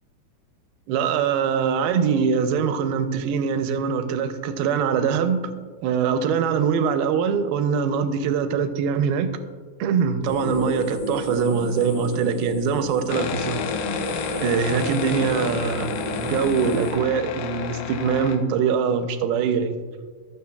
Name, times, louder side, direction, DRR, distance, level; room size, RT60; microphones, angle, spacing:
voice 1, 0.9-5.5 5.8-9.3 9.8-13.6 14.4-15.9 16.2-19.8, right 6 dB, 85° right, 9 dB, 2.5 m, -23 dB
sound 1, 10.2-16.9, left 1 dB, 60° left, 4.5 m, -31 dB
sound 2, 13.1-18.4, left 6 dB, 80° left, 1.9 m, -31 dB
20.5 x 6.9 x 2.3 m, 1.5 s
omnidirectional pair, 4.3 m